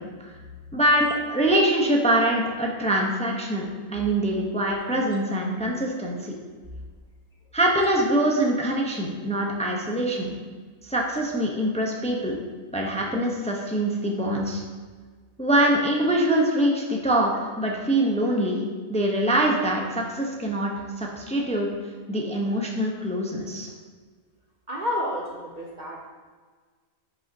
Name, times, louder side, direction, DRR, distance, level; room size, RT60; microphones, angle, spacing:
voice 1, 0.7-6.3 7.5-10.3 10.8-12.4 12.7-14.6 15.4-18.6 18.9-21.7 22.1-23.7, right 1 dB, 5° left, -1 dB, 0.7 m, -24 dB
voice 2, 24.7-26.1, left 1 dB, 45° right, -1 dB, 0.7 m, -30 dB
10.0 x 6.3 x 2.8 m, 1.5 s
omnidirectional pair, 1.5 m